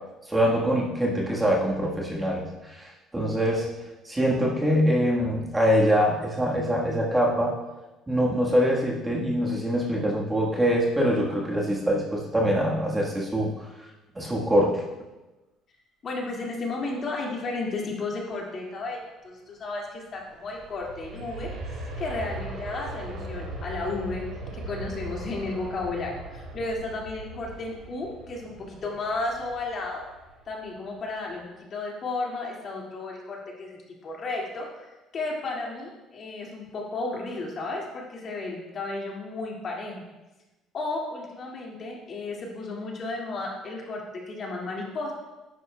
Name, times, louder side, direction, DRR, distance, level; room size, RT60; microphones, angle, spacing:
voice 1, 0.3-3.7 4.0-7.5 8.1-13.7 14.1-14.9, equal, 15° right, -3 dB, 1.4 m, -24 dB
voice 2, 16.0-19.0 19.2-21.5 22.0-30.0 30.5-31.4 31.7-40.0 40.7-44.0 44.3-45.1, left 3 dB, 40° left, -1 dB, 2.1 m, -33 dB
Aircraft, 20.1-30.9 31.3-31.4, right 1 dB, 75° right, 2.9 m, -39 dB
11.0 x 10.0 x 2.2 m, 1.1 s
cardioid pair, 130°, 0 cm